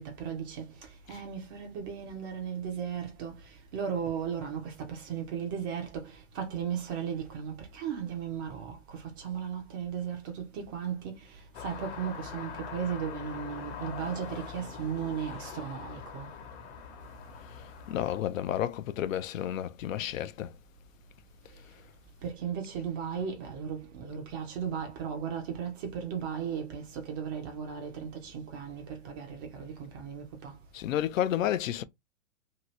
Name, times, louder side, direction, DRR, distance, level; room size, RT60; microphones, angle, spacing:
voice 1, 0.0-16.3 22.2-30.5, right 7 dB, 20° right, 0.3 m, -36 dB
sound 1, 11.5-18.2, left 7 dB, 55° left, 1.0 m, -43 dB
voice 2, 17.9-20.5 30.7-31.8, left 11 dB, 80° left, 0.5 m, -31 dB
2.8 x 2.6 x 2.9 m
hypercardioid pair, 140°, 39 cm